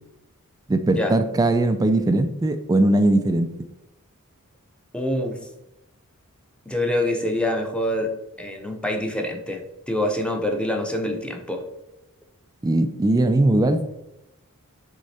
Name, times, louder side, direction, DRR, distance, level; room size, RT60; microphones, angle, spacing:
voice 1, 0.7-3.5 12.6-13.8, right 2 dB, 15° right, 8 dB, 0.3 m, -20 dB
voice 2, 4.9-5.4 6.7-8.1 8.4-11.6, left 1 dB, 5° left, 3 dB, 0.7 m, -25 dB
6.5 x 3.7 x 4.2 m, 0.88 s
head